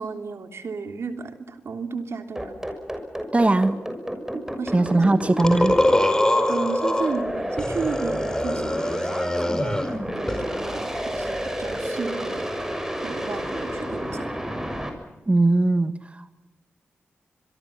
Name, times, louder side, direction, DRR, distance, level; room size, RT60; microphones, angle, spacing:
voice 1, 0.0-2.6 4.3-4.9 6.5-12.5 13.0-14.3, right 4 dB, 70° right, 6 dB, 3.1 m, -33 dB
sound 1, 2.4-14.9, equal, 10° right, 6.6 m, -30 dB
voice 2, 3.3-3.8 4.7-5.8 15.3-16.3, right 2 dB, 25° right, 10 dB, 1.4 m, -20 dB
sound 2, 5.4-7.2 7.6-10.0 10.3-11.9, left 1 dB, 15° left, 4.6 m, -24 dB
25.5 x 23.0 x 7.3 m, 1.1 s
cardioid pair, 55°, 5 cm